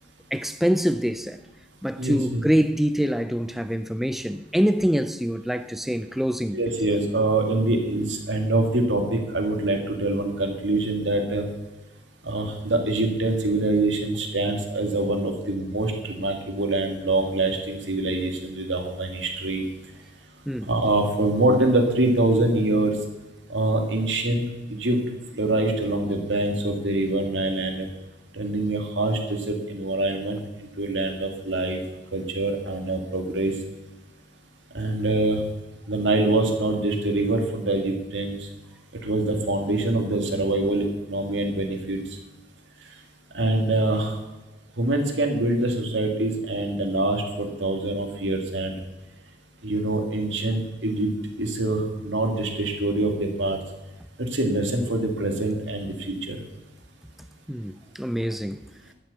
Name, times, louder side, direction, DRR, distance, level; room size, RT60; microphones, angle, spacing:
voice 1, 0.3-1.4 1.8-6.6 20.5-20.7 57.5-58.7, equal, ahead, 0.3 m, -25 dB
voice 2, 2.0-2.4 6.5-11.5 12.2-19.6 20.7-23.0 23.5-24.4 24.8-25.0 25.3-27.9 28.3-31.8 32.1-33.5 34.7-35.4 35.9-38.5 39.0-42.0 43.3-44.2 44.8-48.8 49.6-51.1 51.4-53.6 54.2-56.4, right 2 dB, 85° right, 2.2 m, -24 dB
12.0 x 6.4 x 8.2 m
head